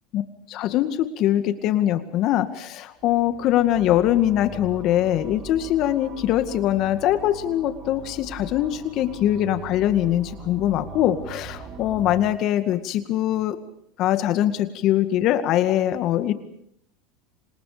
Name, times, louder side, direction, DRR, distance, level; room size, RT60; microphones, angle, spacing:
voice 1, 0.5-13.6 14.0-16.3, left 12 dB, 55° left, 10 dB, 2.1 m, -22 dB
sound 1, 3.0-12.2, right 4 dB, 40° right, 4.9 m, -41 dB
29.0 x 26.0 x 5.2 m, 0.70 s
supercardioid pair, 100°, 0 cm